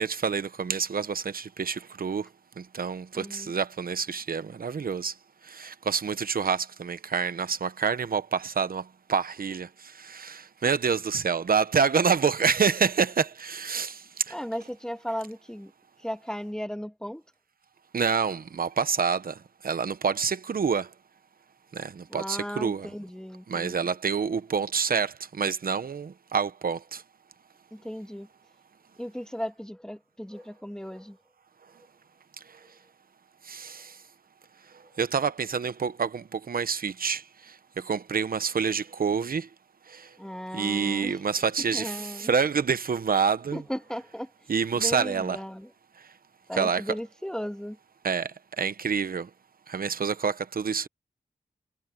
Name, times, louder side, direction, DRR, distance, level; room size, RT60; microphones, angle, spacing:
voice 1, 0.0-2.3 2.6-5.1 5.5-14.4 17.9-19.4 19.6-20.9 21.7-22.9 23.5-27.0 33.5-34.0 35.0-39.5 39.9-40.1 40.5-43.6 44.5-45.4 46.5-46.8 48.0-48.3 48.6-49.3 49.7-50.9, right 6 dB, 70° right, 0.9 m, -27 dB
voice 2, 3.1-3.5 14.3-15.7 16.0-17.2 22.1-23.9 27.7-28.3 29.0-31.2 40.2-41.2 41.7-42.3 43.5-44.3 44.7-45.7 46.5-47.8, equal, 5° left, 1.7 m, -36 dB
wide cardioid pair, 65°, 15 cm